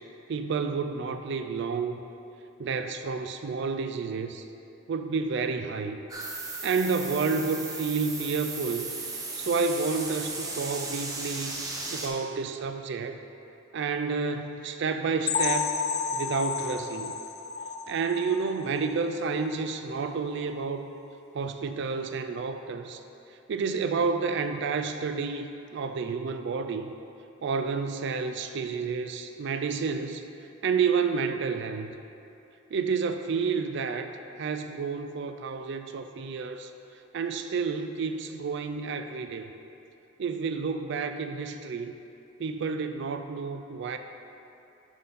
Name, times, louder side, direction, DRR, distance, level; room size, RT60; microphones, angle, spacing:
voice 1, 0.3-2.0 2.6-4.4 4.9-6.0 6.6-8.9 9.4-11.6 11.9-13.2 13.7-15.8 16.1-17.1 17.9-20.9 21.3-23.0 23.5-26.9 27.4-30.2 30.6-31.9 32.7-34.1 34.4-36.7 37.1-39.5 40.2-41.9 42.4-44.0, right 5 dB, 60° right, 7 dB, 0.4 m, -30 dB
sound 1, 6.1-12.1, right 3 dB, 20° right, 0.8 m, -36 dB
sound 2, 15.3-18.9 19.3-19.4 19.8-19.9 20.4-20.5, left 6 dB, 35° left, 0.4 m, -31 dB
10.5 x 4.0 x 4.1 m, 2.8 s
head